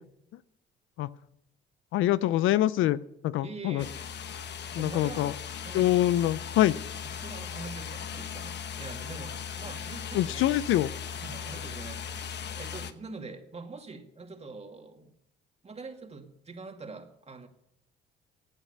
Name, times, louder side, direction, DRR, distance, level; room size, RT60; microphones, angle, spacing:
voice 1, 1.9-3.8 4.8-5.3 5.7-6.8 10.1-10.9, left 13 dB, 75° left, 17 dB, 0.6 m, -25 dB
voice 2, 3.4-4.0 4.7-5.4 5.6-5.9 7.0-10.5 11.1-15.1 15.6-17.5, right 3 dB, 30° right, 4 dB, 2.4 m, -44 dB
sound 1, 3.8-12.9, left 7 dB, 55° left, 1.1 m, -38 dB
16.0 x 9.0 x 6.7 m, 0.78 s
supercardioid pair, 80°, 21 cm